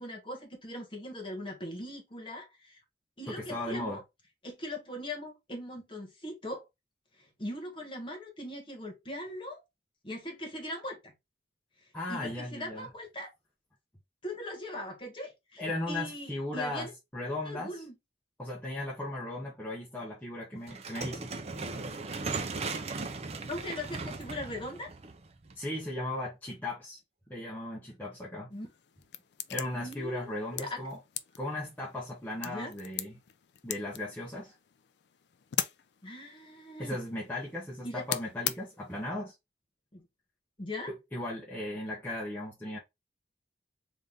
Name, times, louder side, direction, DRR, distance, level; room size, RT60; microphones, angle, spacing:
voice 1, 0.0-2.8 3.2-4.0 4.4-6.6 7.2-9.6 10.0-11.1 12.1-13.3 14.2-16.9 17.4-17.9 23.5-24.9 28.5-28.7 29.7-30.8 32.4-32.7 36.0-37.0 37.8-38.1 39.9-40.1 40.6-40.9, left 1 dB, 25° left, 1.3 m, -40 dB
voice 2, 3.3-4.0 11.9-12.9 15.6-17.8 18.4-21.4 25.6-27.0 27.3-28.5 29.5-31.0 31.4-33.1 33.6-34.5 36.8-39.3 40.9-42.8, left 1 dB, 10° left, 0.7 m, -37 dB
sound 1, 20.7-25.8, right 3 dB, 35° right, 0.5 m, -37 dB
sound 2, 28.5-39.1, left 11 dB, 60° left, 0.4 m, -41 dB
3.8 x 2.6 x 3.4 m
head